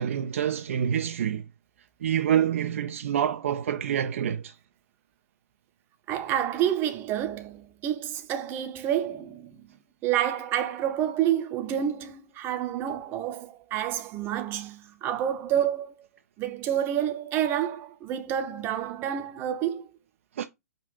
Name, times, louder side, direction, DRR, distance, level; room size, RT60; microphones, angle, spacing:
voice 1, 0.0-1.4 2.0-4.5 20.4-20.5, right 9 dB, 55° right, 0.4 m, -27 dB
voice 2, 6.1-9.6 10.0-16.1 16.4-19.9, right 10 dB, 25° right, 0.7 m, -29 dB
5.1 x 2.4 x 4.1 m
figure-of-eight pair, 115°, 9 cm